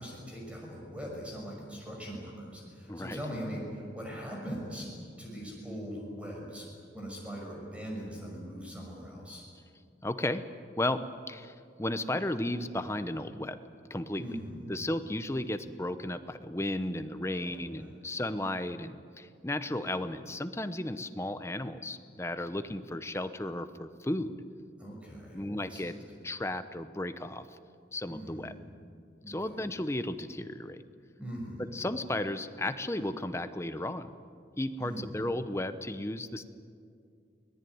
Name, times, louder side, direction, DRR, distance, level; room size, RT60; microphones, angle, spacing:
voice 1, 0.0-4.9 5.2-6.7 6.9-9.4 14.2-14.7 17.3-17.9 24.8-26.0 28.1-28.5 29.2-29.6 31.2-31.7 34.8-35.1, equal, 5° right, -1 dB, 6.0 m, -41 dB
voice 2, 2.9-3.2 10.0-10.5 10.8-13.6 13.9-14.4 14.7-24.4 25.3-25.9 26.2-27.5 27.9-28.5 29.3-30.8 31.6-34.1 34.6-36.4, left 1 dB, 15° left, 10 dB, 0.8 m, -34 dB
24.0 x 19.0 x 9.4 m, 2.3 s
head